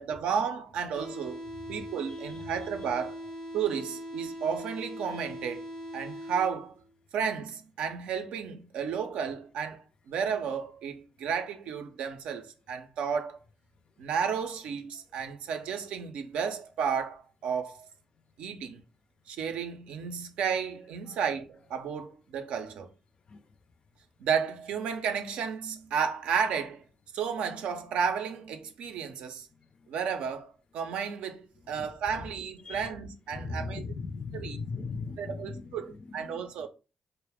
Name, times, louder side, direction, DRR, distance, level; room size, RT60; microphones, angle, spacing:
voice 1, 0.0-1.4 1.7-3.2 3.5-5.7 5.9-6.8 7.1-13.4 14.0-17.9 18.4-18.8 19.3-22.9 24.2-26.8 27.1-29.5 29.9-33.8 34.3-34.6 35.2-36.7, right 7 dB, 80° right, 0.4 m, -32 dB
sound 1, 0.9-6.9, equal, 85° left, 0.7 m, -41 dB
voice 2, 31.7-32.2 32.6-32.9 33.3-36.7, left 4 dB, 50° left, 0.4 m, -39 dB
2.2 x 2.0 x 3.3 m
supercardioid pair, 50°, 2 cm